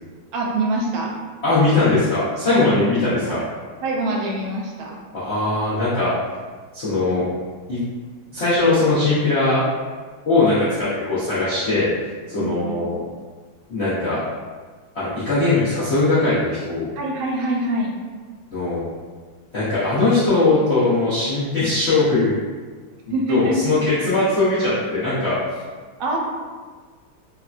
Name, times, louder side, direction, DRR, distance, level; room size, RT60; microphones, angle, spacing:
voice 1, 0.3-1.1 2.5-2.9 3.3-3.4 3.8-5.0 12.4-12.8 17.0-17.9 23.1-23.7 26.0-26.2, right 1 dB, 85° right, -1 dB, 1.4 m, -24 dB
voice 2, 1.4-3.4 5.1-6.1 6.7-7.3 7.7-7.8 8.3-9.6 10.3-11.9 12.3-13.0 13.7-14.2 14.9-16.9 18.5-18.9 19.5-22.4 23.3-25.4, left 2 dB, 80° left, -13 dB, 0.5 m, -20 dB
3.4 x 2.1 x 2.4 m, 1.5 s
omnidirectional pair, 2.2 m